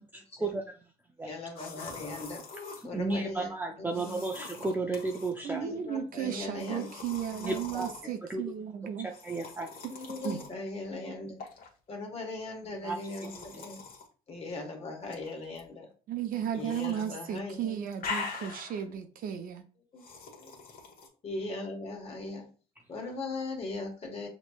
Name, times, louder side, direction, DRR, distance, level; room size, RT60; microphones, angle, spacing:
voice 1, 0.4-0.8 1.2-1.3 2.8-5.7 7.4-7.9 8.2-8.4 9.0-9.7 12.8-13.0 13.3-13.7, right 3 dB, 10° right, 2 dB, 0.5 m, -33 dB
voice 2, 1.2-2.4 2.8-3.5 3.8-4.2 5.6-6.9 7.8-8.1 9.9-11.4 11.9-13.8 14.3-15.9 16.5-17.8 19.9-20.0 20.3-20.6 21.2-22.5 22.9-24.3, left 2 dB, 35° left, 2 dB, 1.4 m, -39 dB
sound 1, 1.6-2.9 3.9-5.3 6.6-8.0 9.1-10.5 11.4-11.7 12.9-14.1 15.0-15.6 16.6-17.1 17.4-18.9 20.0-21.1, left 4 dB, 60° left, 1.2 m, -43 dB
voice 3, 5.4-9.1 10.2-10.4 16.1-19.6, right 9 dB, 55° right, 7 dB, 0.7 m, -35 dB
6.1 x 3.1 x 2.3 m, 0.39 s
cardioid pair, 110°, 17 cm